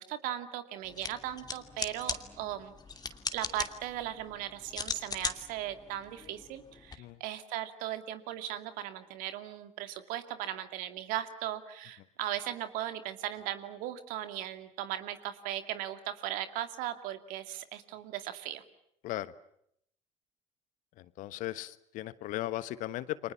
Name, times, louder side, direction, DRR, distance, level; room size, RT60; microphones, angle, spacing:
voice 1, 0.0-2.7 3.3-18.6, right 12 dB, 60° right, 10 dB, 2.4 m, -38 dB
sound 1, 0.8-6.9, left 5 dB, 25° left, 2.7 m, -40 dB
voice 2, 19.0-19.3 21.0-23.3, left 15 dB, 55° left, 16 dB, 1.3 m, -37 dB
30.0 x 25.0 x 7.3 m, 0.72 s
figure-of-eight pair, 60°, 16 cm